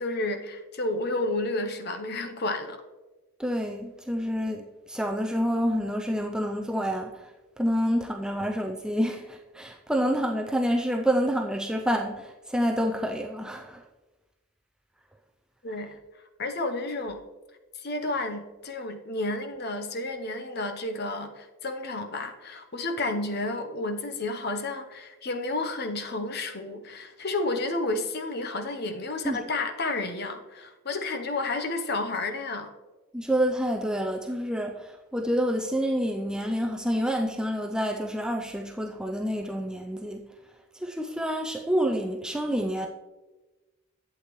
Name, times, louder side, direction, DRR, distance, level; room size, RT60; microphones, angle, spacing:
voice 1, 0.0-2.8 15.6-15.9 16.4-17.2 17.8-32.7, left 2 dB, 45° left, 0.8 m, -31 dB
voice 2, 3.4-7.3 7.6-13.8 29.2-29.4 33.1-40.2 40.7-42.9, equal, 5° right, 0.4 m, -28 dB
11.5 x 8.2 x 3.1 m
head